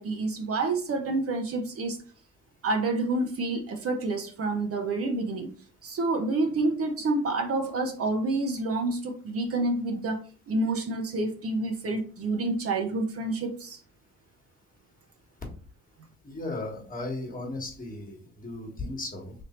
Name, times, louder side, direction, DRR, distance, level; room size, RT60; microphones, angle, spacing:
voice 1, 0.0-2.0 2.6-5.5 5.8-13.8, right 2 dB, 50° right, 4 dB, 0.8 m, -28 dB
voice 2, 16.2-19.3, left 2 dB, 30° left, 1 dB, 1.4 m, -36 dB
3.4 x 2.7 x 4.2 m, 0.41 s
cardioid pair, 90°, 30 cm